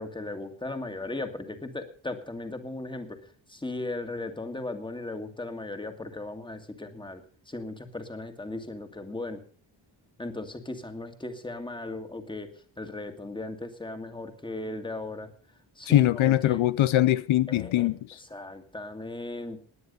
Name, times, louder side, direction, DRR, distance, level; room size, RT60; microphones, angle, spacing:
voice 1, 0.0-3.2 3.5-9.4 10.2-15.3 15.8-16.6 17.5-17.9 18.2-19.6, left 2 dB, 10° left, 1.9 m, -37 dB
voice 2, 15.9-18.2, left 13 dB, 80° left, 0.6 m, -22 dB
19.5 x 9.5 x 5.4 m
wide cardioid pair, 140°, 47 cm